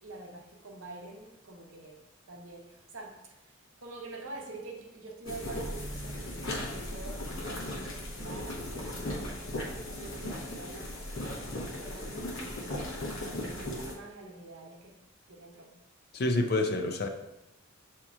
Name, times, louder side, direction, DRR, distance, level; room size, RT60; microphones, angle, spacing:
voice 1, 0.0-2.0 2.3-3.2 3.8-12.9 13.2-14.9 15.3-15.8, right 2 dB, 65° right, 0.8 m, -46 dB
sound 1, 5.2-13.9, left 1 dB, 70° left, 0.8 m, -37 dB
voice 2, 16.1-17.1, left 2 dB, 50° left, 0.5 m, -27 dB
7.1 x 2.8 x 2.4 m
head